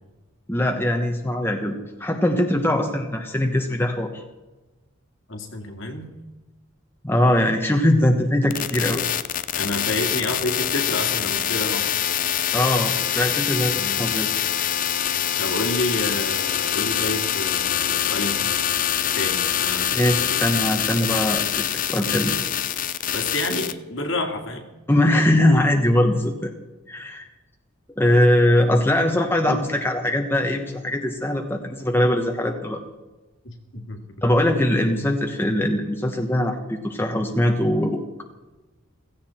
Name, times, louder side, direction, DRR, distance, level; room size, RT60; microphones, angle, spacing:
voice 1, 0.5-4.2 7.0-9.0 12.5-14.3 19.9-22.3 24.9-26.5 26.9-27.3 28.0-32.8 34.2-38.2, left 1 dB, 10° left, 2 dB, 1.1 m, -21 dB
voice 2, 5.3-6.1 9.5-11.9 13.7-14.2 15.4-18.6 19.1-20.4 23.1-24.6 33.4-34.0, left 2 dB, 60° left, 4 dB, 2.2 m, -29 dB
sound 1, 8.5-23.7, left 10 dB, 40° left, 0.5 m, -24 dB
16.5 x 16.0 x 4.4 m, 1.1 s
head